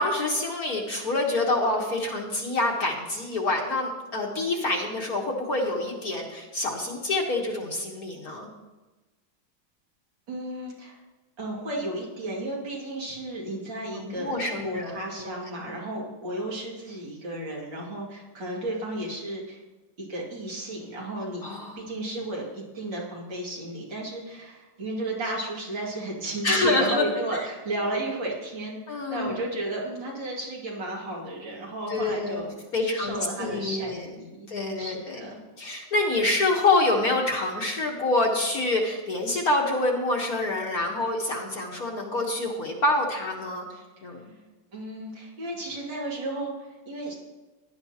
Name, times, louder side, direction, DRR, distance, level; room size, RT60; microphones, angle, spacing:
voice 1, 0.0-8.5 13.9-15.3 15.6-15.7 21.4-21.8 26.4-27.1 28.9-29.4 31.9-32.4 32.7-34.0 34.5-35.3 35.6-43.6 44.0-44.2, left 2 dB, 50° left, 0 dB, 1.6 m, -26 dB
voice 2, 10.3-11.0 11.4-19.6 20.0-21.4 21.8-32.5 32.8-34.5 34.8-35.4 44.7-47.2, right 1 dB, 60° right, -3 dB, 3.0 m, -33 dB
16.5 x 11.0 x 2.9 m, 1.2 s
omnidirectional pair, 2.3 m